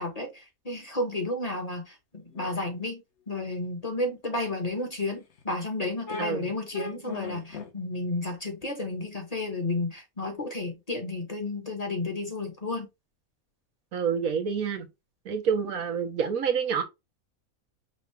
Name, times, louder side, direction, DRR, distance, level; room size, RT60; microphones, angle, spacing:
voice 1, 0.0-3.0 3.3-12.9, left 2 dB, 30° left, 1.1 m, -32 dB
sound 1, 2.3-2.5 3.3-3.4 3.9-4.0 5.3-5.4 6.1-6.3 6.7-7.7, left 2 dB, 55° left, 1.2 m, -38 dB
voice 2, 6.2-6.5 13.9-14.9 15.2-16.8, right 6 dB, 75° right, 1.3 m, -27 dB
5.6 x 2.4 x 3.3 m
omnidirectional pair, 1.5 m